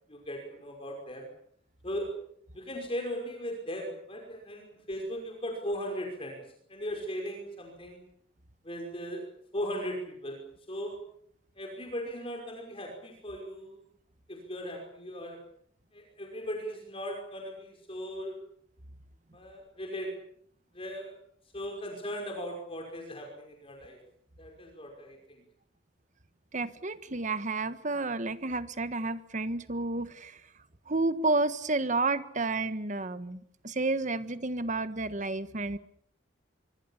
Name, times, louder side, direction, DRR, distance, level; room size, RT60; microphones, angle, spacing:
voice 1, 0.1-1.3 1.8-2.1 2.5-6.4 6.7-8.0 8.6-9.3 9.5-11.0 11.6-13.8 14.3-15.4 15.9-18.3 19.3-20.1 20.7-21.1 21.5-24.0 24.4-25.4, equal, 30° left, 2 dB, 5.5 m, -38 dB
voice 2, 26.5-30.4 30.9-35.8, right 3 dB, 40° right, 12 dB, 1.5 m, -31 dB
25.0 x 24.5 x 7.3 m, 0.67 s
head